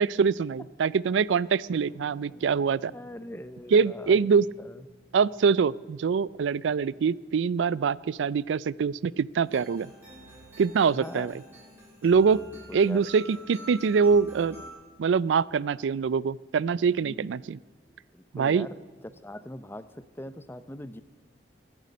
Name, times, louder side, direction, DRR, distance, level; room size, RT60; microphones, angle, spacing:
voice 1, 0.0-2.9 3.7-4.5 5.1-9.9 10.6-11.3 12.0-12.4 12.7-14.6 15.0-17.6 18.3-18.7, right 5 dB, 90° right, 21 dB, 0.4 m, -24 dB
Harp, 1.6-11.3 11.5-11.6 11.8-12.1, equal, 60° right, 3.1 m, -59 dB
voice 2, 2.9-4.9 10.9-11.3 12.1-13.0 17.0-17.4 18.1-21.0, left 1 dB, 10° left, 13 dB, 0.5 m, -42 dB
sound 1, 9.4-14.7, right 1 dB, 10° right, 7.0 m, -48 dB
24.5 x 11.0 x 5.2 m, 1.4 s
head